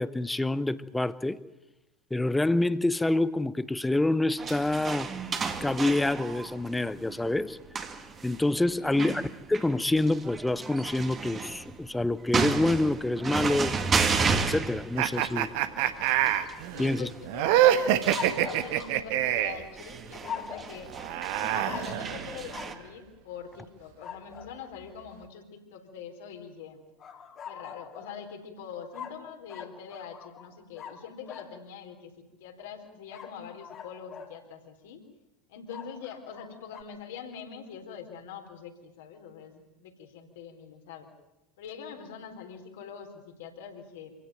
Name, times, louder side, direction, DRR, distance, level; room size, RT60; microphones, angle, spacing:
voice 1, 0.0-1.4 2.1-5.1 5.6-7.6 8.2-9.2 9.5-13.8 14.3-15.5 16.8-17.1, left 2 dB, 5° left, 0.9 m, -27 dB
sound 1, 4.4-22.8, right 5 dB, 25° right, 2.2 m, -33 dB
sound 2, 15.0-19.7 20.9-22.6, right 12 dB, 55° right, 1.4 m, -26 dB
voice 2, 16.7-21.2 21.5-26.8 27.5-35.0 35.5-41.1 41.6-44.1, left 7 dB, 60° left, 3.9 m, -44 dB
sound 3, 18.1-19.7 20.2-20.8 21.6-22.0 22.5-22.8 24.0-24.5 27.0-28.2 28.9-31.5 33.1-34.4 35.7-36.8, left 7 dB, 35° left, 2.8 m, -42 dB
26.5 x 17.0 x 9.2 m
figure-of-eight pair, 75°, 0 cm